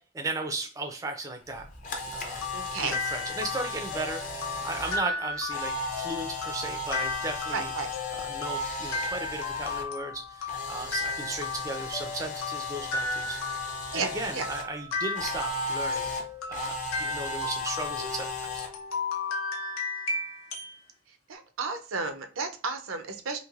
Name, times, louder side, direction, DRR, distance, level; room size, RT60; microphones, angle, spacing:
voice 1, 0.2-1.7 2.1-2.4 2.8-7.7 8.1-13.4 13.9-16.2 16.5-18.7, right 2 dB, 15° right, 4 dB, 0.3 m, -36 dB
Camera, 1.5-9.8 10.1-14.6 15.2-18.7, left 2 dB, 40° left, 0.5 m, -36 dB
sound 1, 1.9-20.8, left 3 dB, 90° left, 0.7 m, -35 dB
voice 2, 2.5-3.0 7.5-7.9 13.9-14.5 21.3-23.4, right 4 dB, 90° right, 7 dB, 0.5 m, -33 dB
3.1 x 2.6 x 2.4 m, 0.37 s
head